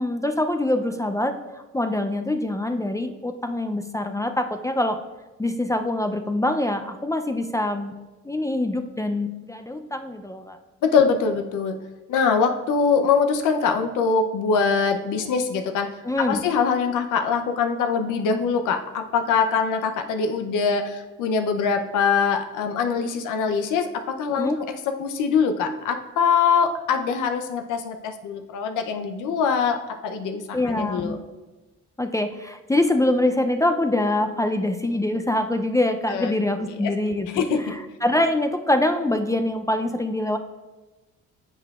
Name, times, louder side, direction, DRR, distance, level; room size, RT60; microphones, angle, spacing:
voice 1, 0.0-5.0 5.4-7.9 8.2-10.6 16.0-16.4 24.4-24.6 30.5-31.2 32.0-40.4, left 1 dB, 10° left, 6 dB, 0.4 m, -24 dB
voice 2, 10.8-11.8 12.1-15.9 16.2-24.7 25.0-31.2 36.1-36.3 36.8-36.9 37.3-37.6, left 5 dB, 85° left, 6 dB, 0.7 m, -23 dB
10.5 x 6.7 x 2.4 m, 1.2 s
cardioid pair, 90°, 30 cm